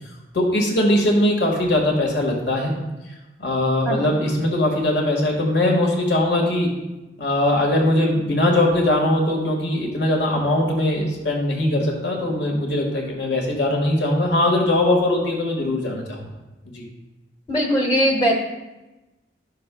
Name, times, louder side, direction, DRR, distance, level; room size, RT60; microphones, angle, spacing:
voice 1, 0.3-2.8 3.4-6.7 7.2-16.2 16.7-16.9, left 1 dB, 70° left, -1 dB, 1.7 m, -20 dB
voice 2, 3.8-4.2 17.5-18.4, equal, 20° left, 0 dB, 0.9 m, -20 dB
12.0 x 6.6 x 2.3 m, 1.1 s
head